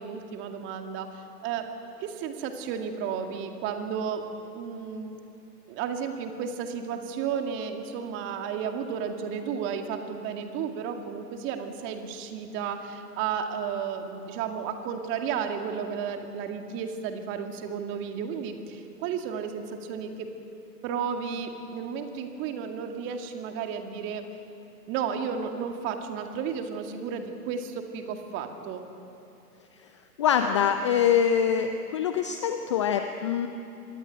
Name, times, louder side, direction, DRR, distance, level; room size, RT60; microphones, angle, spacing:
voice 1, 0.0-1.7 2.0-4.2 4.5-5.2 5.7-20.3 20.8-24.3 24.9-28.8, right 7 dB, 25° right, 5 dB, 2.2 m, -33 dB
voice 2, 30.2-33.5, left 8 dB, 20° left, 8 dB, 0.5 m, -24 dB
26.0 x 20.5 x 9.2 m, 2.7 s
figure-of-eight pair, 130°, 49 cm